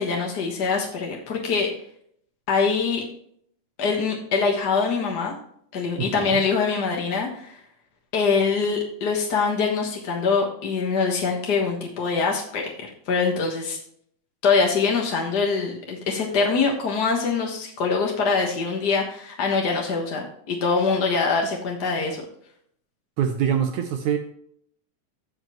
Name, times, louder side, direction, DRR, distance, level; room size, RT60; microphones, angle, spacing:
voice 1, 0.0-1.7 2.5-3.0 3.8-5.3 5.7-7.6 8.1-13.8 14.4-22.2, left 5 dB, 50° left, 0 dB, 1.3 m, -24 dB
voice 2, 6.0-6.4 23.2-24.2, right 8 dB, 75° right, 5 dB, 2.0 m, -24 dB
15.5 x 5.2 x 3.0 m, 0.66 s
omnidirectional pair, 3.7 m